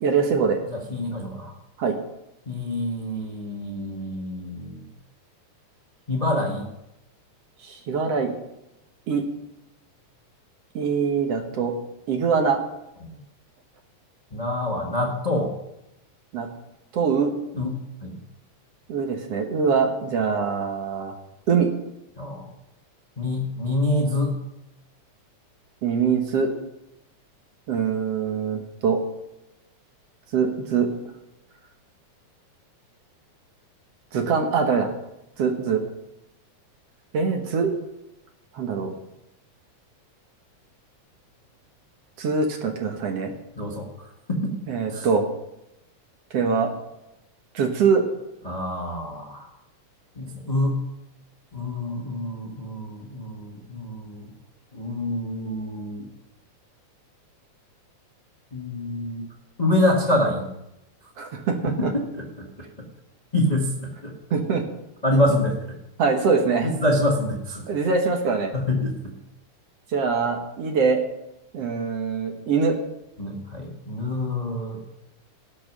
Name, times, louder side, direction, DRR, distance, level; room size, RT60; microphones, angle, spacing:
voice 1, 0.0-0.6 1.8-2.0 7.6-8.3 9.1-9.2 10.7-11.8 12.1-12.6 16.3-16.5 16.9-17.3 18.9-21.1 21.5-21.7 25.8-26.5 27.7-29.0 30.3-30.9 34.1-34.9 35.4-35.8 37.1-37.8 38.5-38.9 42.2-43.3 44.7-45.3 46.3-46.7 47.5-48.0 61.2-61.9 64.3-64.6 66.0-66.7 67.7-68.5 69.9-71.0 71.5-72.8, right 5 dB, 60° right, 4 dB, 2.1 m, -23 dB
voice 2, 0.7-1.5 2.4-4.8 6.1-6.6 13.1-13.2 14.3-15.5 17.5-18.1 22.2-22.5 23.2-24.3 43.6-44.5 44.9-45.1 48.4-49.5 50.1-50.8 51.5-54.3 54.7-56.1 58.5-59.2 59.6-60.4 61.8-62.2 63.3-64.2 65.0-65.8 66.6-67.6 68.5-68.9 73.2-74.8, left 1 dB, 25° left, 0 dB, 0.9 m, -26 dB
17.5 x 6.7 x 6.1 m, 0.88 s
omnidirectional pair, 3.5 m